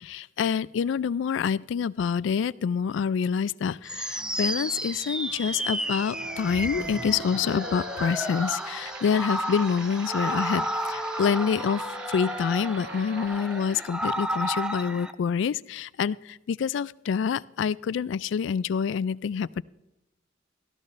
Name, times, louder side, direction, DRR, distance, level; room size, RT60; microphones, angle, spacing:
voice 1, 0.0-11.8 12.1-19.6, left 6 dB, 65° left, 20 dB, 0.3 m, -27 dB
sound 1, 3.9-15.1, equal, 5° right, 0.4 m, -32 dB
Wind instrument woodwind instrument, 5.3-9.5 10.1-13.3, equal, 85° right, 1.4 m, -41 dB
sound 2, 7.2-13.9, right 5 dB, 55° right, 1.1 m, -45 dB
15.5 x 13.0 x 3.2 m, 0.93 s
head